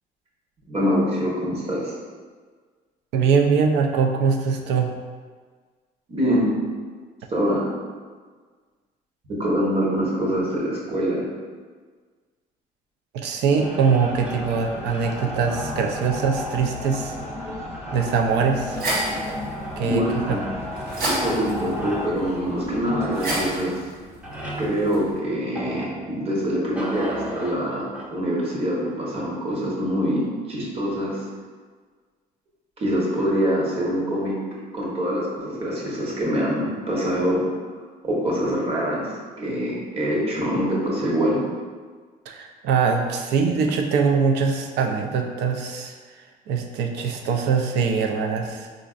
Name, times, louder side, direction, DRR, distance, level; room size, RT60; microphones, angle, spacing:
voice 1, 0.7-1.9 6.1-6.5 7.3-7.7 9.3-11.3 19.1-19.2 19.8-20.4 21.1-23.8 24.6-31.2 32.8-34.3 34.7-37.4 38.0-39.0 39.4-41.4, equal, 35° right, -5 dB, 1.0 m, -24 dB
voice 2, 3.1-4.9 13.1-17.1 17.9-18.8 19.8-20.4 42.3-45.9 46.5-48.7, right 5 dB, 80° right, 3 dB, 0.4 m, -22 dB
sound 1, 13.5-26.3 26.7-28.1, equal, 5° right, 0.6 m, -34 dB
sound 2, 14.0-23.6, left 3 dB, 40° left, 0.5 m, -39 dB
sound 3, 18.4-25.2, right 1 dB, 60° right, 1.0 m, -32 dB
4.0 x 2.5 x 2.4 m, 1.5 s
cardioid pair, 110°, 17 cm